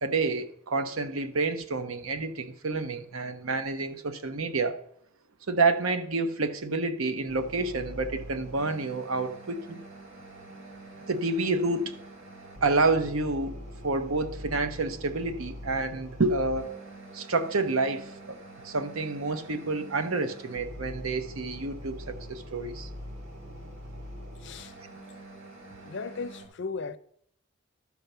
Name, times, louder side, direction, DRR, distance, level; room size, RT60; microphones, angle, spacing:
voice 1, 0.0-4.8 5.5-9.8 11.1-11.9 12.6-13.6 13.8-16.7 17.1-18.4 18.6-22.9, right 3 dB, 90° right, 0.9 m, -29 dB
sound 1, 7.3-26.5, equal, 65° right, 2.5 m, -44 dB
voice 2, 24.4-24.7 25.8-27.0, left 4 dB, 60° left, 0.5 m, -36 dB
12.0 x 4.6 x 6.7 m
head